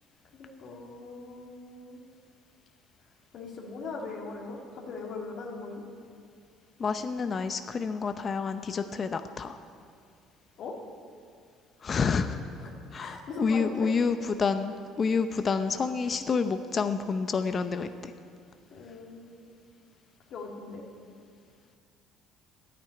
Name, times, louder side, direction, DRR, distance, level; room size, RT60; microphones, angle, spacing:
voice 1, 0.3-2.0 3.3-5.8 10.6-10.7 12.6-13.9 18.7-19.4 20.3-20.8, left 3 dB, 60° left, -2 dB, 2.0 m, -40 dB
voice 2, 6.8-9.6 11.8-12.4 12.9-18.1, left 5 dB, 40° left, 9 dB, 0.7 m, -29 dB
10.5 x 9.4 x 9.6 m, 2.2 s
supercardioid pair, 70°, 0 cm